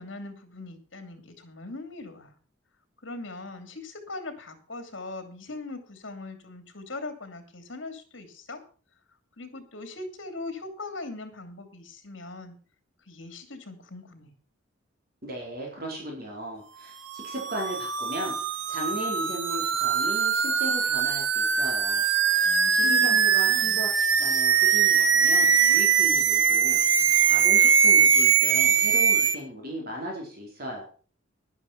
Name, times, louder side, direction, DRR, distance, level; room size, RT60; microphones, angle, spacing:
voice 1, 0.0-2.4 3.0-8.6 9.4-12.5 13.1-14.3 22.4-23.9, left 2 dB, 65° left, 8 dB, 2.9 m, -40 dB
voice 2, 15.2-18.4 18.7-22.1 22.7-26.8 27.3-30.8, right 1 dB, 50° right, -1 dB, 4.5 m, -36 dB
sound 1, 17.1-29.4, right 7 dB, 70° right, 1.2 m, -22 dB
11.0 x 11.0 x 5.9 m, 0.40 s
head